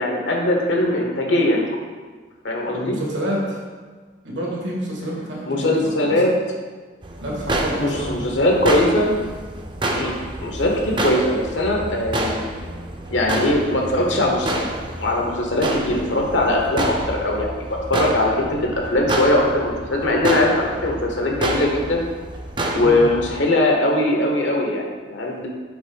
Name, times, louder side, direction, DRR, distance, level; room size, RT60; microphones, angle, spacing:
voice 1, 0.0-1.6 2.4-3.0 5.5-6.3 7.7-9.2 9.9-10.1 10.4-12.4 13.1-14.6 15.0-17.5 17.9-22.0 22.7-25.5, left 1 dB, 80° left, 0 dB, 1.0 m, -20 dB
voice 2, 2.7-3.6 4.2-6.2 7.2-8.2 22.8-23.0, equal, 80° right, -3 dB, 1.6 m, -28 dB
sound 1, 7.0-23.4, right 1 dB, 25° right, 0.5 m, -28 dB
5.2 x 4.0 x 5.1 m, 1.4 s
head